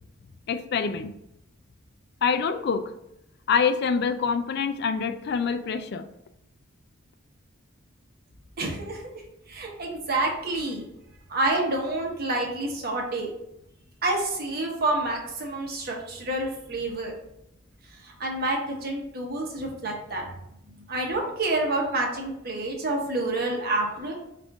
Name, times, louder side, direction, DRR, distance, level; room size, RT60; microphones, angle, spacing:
voice 1, 0.5-1.1 2.2-2.8 3.5-6.0, left 6 dB, 55° left, 9 dB, 0.3 m, -25 dB
voice 2, 8.6-9.0 9.5-10.8 11.3-13.3 14.0-17.1 17.9-20.3 20.9-24.1, right 2 dB, 50° right, 0 dB, 1.0 m, -28 dB
5.1 x 2.5 x 3.5 m, 0.81 s
head